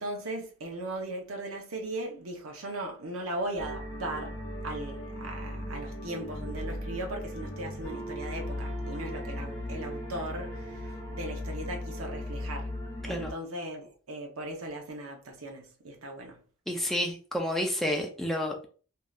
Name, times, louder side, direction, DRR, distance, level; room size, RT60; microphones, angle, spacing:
voice 1, 0.0-4.4 4.6-12.7 13.1-16.4, right 1 dB, 90° right, 0.8 m, -38 dB
sound 1, 3.6-13.3, left 1 dB, 20° left, 1.2 m, -37 dB
voice 2, 16.7-18.7, left 1 dB, ahead, 0.5 m, -30 dB
3.2 x 2.7 x 2.4 m
head